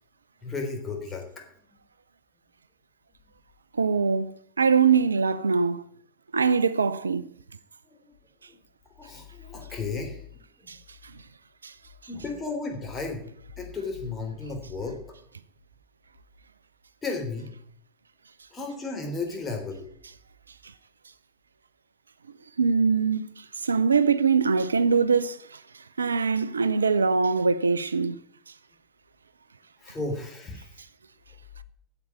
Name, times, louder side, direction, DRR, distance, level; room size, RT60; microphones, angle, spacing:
voice 1, 0.4-1.5 7.9-8.1 8.5-8.6 9.0-10.2 10.6-10.7 12.1-13.3 13.6-15.0 17.0-17.5 18.5-19.9 29.8-30.7, left 3 dB, 20° left, 3.5 m, -34 dB
voice 2, 3.8-5.8 6.3-7.2 10.7-10.8 11.6-11.7 22.6-25.6 26.0-28.2, right 5 dB, 75° right, 0.4 m, -23 dB
8.6 x 7.8 x 8.8 m
figure-of-eight pair, 80°, 0 cm